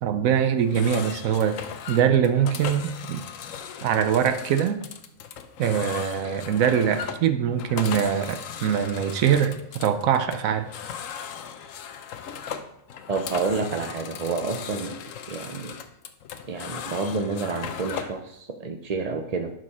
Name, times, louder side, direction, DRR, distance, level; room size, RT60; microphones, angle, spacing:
voice 1, 0.0-1.6 1.9-3.2 3.8-4.8 5.6-10.7, right 8 dB, 80° right, 9 dB, 1.1 m, -23 dB
sound 1, 0.6-18.2, left 7 dB, 75° left, 1.1 m, -37 dB
voice 2, 13.1-15.0 15.3-15.7 16.5-19.5, right 4 dB, 45° right, 4 dB, 0.5 m, -29 dB
11.0 x 5.4 x 4.2 m, 0.79 s
omnidirectional pair, 1.4 m